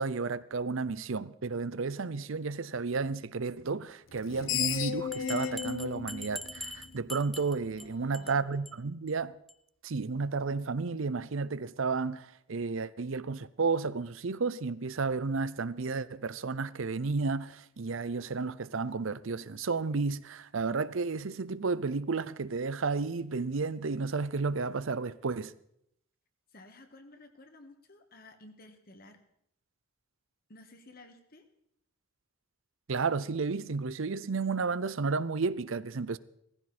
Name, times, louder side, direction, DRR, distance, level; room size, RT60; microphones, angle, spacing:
voice 1, 0.0-9.3 9.8-25.5 32.9-36.2, right 4 dB, 70° right, 0.6 m, -32 dB
Screech, 4.1-7.4, left 8 dB, 70° left, 0.9 m, -34 dB
Bell, 5.1-7.9 8.1-8.4 8.7-8.8 9.1-9.2 9.5-9.6, left 1 dB, ahead, 0.6 m, -42 dB
voice 2, 7.8-8.5 26.5-29.2 30.5-31.4, left 2 dB, 45° left, 1.7 m, -54 dB
18.0 x 15.0 x 4.3 m
head